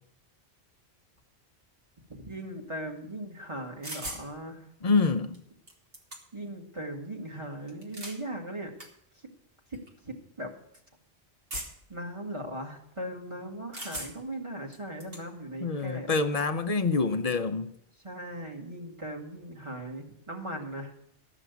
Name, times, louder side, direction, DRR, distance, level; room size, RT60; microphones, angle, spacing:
voice 1, 2.1-4.7 6.3-8.7 10.0-10.5 11.9-16.1 18.0-20.9, right 1 dB, 25° right, 1.8 m, -39 dB
sound 1, 3.8-4.3 5.3-5.4 5.7-6.5 7.7-8.2 8.8-8.9 9.7-9.9 11.5-11.9 13.7-14.3 14.7-15.2, right 1 dB, 60° right, 1.9 m, -39 dB
voice 2, 4.8-5.4 15.6-17.7, left 4 dB, 40° left, 0.6 m, -26 dB
13.0 x 5.9 x 8.1 m
omnidirectional pair, 1.1 m